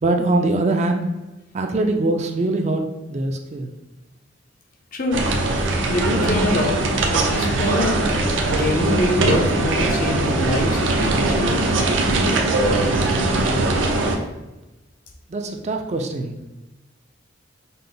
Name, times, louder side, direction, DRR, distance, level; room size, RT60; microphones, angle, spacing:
voice 1, 0.0-1.0 1.5-3.7 15.3-16.4, right 2 dB, 35° right, 4 dB, 0.4 m, -22 dB
sound 1, 5.1-14.2, right 2 dB, 80° right, 0.6 m, -20 dB
voice 2, 5.9-8.1 8.5-11.7, left 1 dB, 45° left, 2 dB, 0.6 m, -24 dB
5.6 x 2.0 x 3.8 m, 1.0 s
head